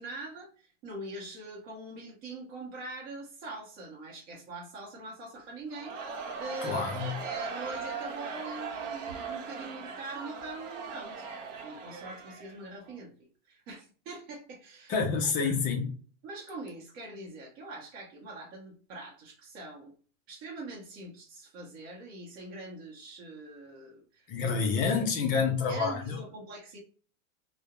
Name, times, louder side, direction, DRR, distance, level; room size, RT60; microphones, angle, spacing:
voice 1, 0.0-6.0 6.4-11.3 11.6-13.1 13.5-14.9 15.4-15.6 16.2-19.9 20.3-24.7 25.3-26.8, right 2 dB, 30° right, 0.7 m, -43 dB
Crowd, 5.7-13.0, right 5 dB, 70° right, 0.8 m, -39 dB
voice 2, 6.6-7.1 14.9-15.9 24.3-26.2, left 5 dB, 25° left, 0.4 m, -28 dB
2.3 x 2.0 x 2.8 m
supercardioid pair, 140°, 39 cm